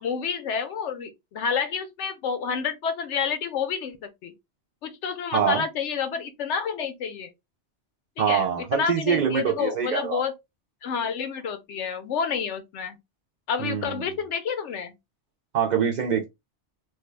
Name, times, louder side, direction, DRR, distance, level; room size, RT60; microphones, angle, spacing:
voice 1, 0.0-4.3 4.8-7.3 8.2-8.5 8.7-10.3 10.8-13.0 13.5-14.9, left 6 dB, 85° left, 1.0 m, -29 dB
voice 2, 5.3-5.6 8.2-10.2 13.6-14.0 15.5-16.3, right 8 dB, 55° right, 0.5 m, -24 dB
3.2 x 2.2 x 3.2 m
omnidirectional pair, 1.2 m